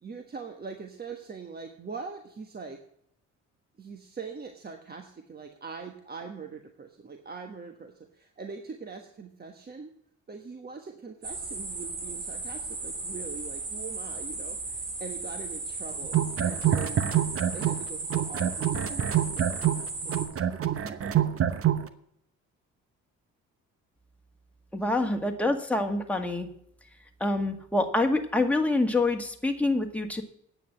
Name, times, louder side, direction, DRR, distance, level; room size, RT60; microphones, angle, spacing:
voice 1, 0.0-2.8 3.8-9.9 10.3-17.0 17.5-19.7 20.0-21.7 25.0-25.2 27.4-27.5, right 5 dB, 30° right, 5 dB, 1.3 m, -43 dB
sound 1, 11.2-20.2, right 3 dB, 90° right, 5.0 m, -36 dB
sound 2, 16.0-17.8 18.1-21.9, right 10 dB, 50° right, 0.9 m, -26 dB
voice 2, 24.7-26.5 27.2-30.2, left 2 dB, 5° left, 3 dB, 1.9 m, -26 dB
9.2 x 8.2 x 7.5 m, 0.70 s
cardioid pair, 90°, 30 cm